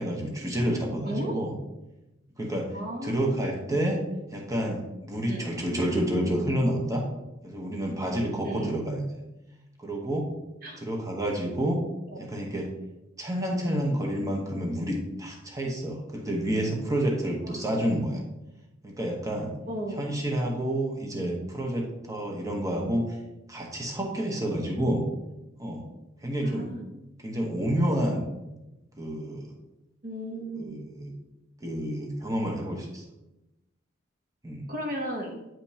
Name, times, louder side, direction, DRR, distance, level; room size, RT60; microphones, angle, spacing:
voice 1, 0.0-1.6 2.4-2.7 3.0-4.0 4.3-7.0 7.4-9.2 9.8-10.3 10.8-11.8 12.2-12.7 13.2-18.2 18.8-19.5 20.0-23.0 23.5-25.0 25.6-25.8 26.2-26.7 27.2-28.3 29.0-29.5 30.6-31.1 31.6-33.0 34.4-34.7, right 1 dB, 15° right, -1 dB, 1.0 m, -29 dB
voice 2, 1.0-1.4 2.7-3.2 5.3-5.5 8.4-8.7 10.6-10.8 12.1-12.3 17.4-17.7 19.7-20.0 22.8-23.0 26.4-26.8 30.0-30.7 34.7-35.4, right 1 dB, 50° right, 1 dB, 1.0 m, -35 dB
9.0 x 5.2 x 2.8 m, 0.98 s
head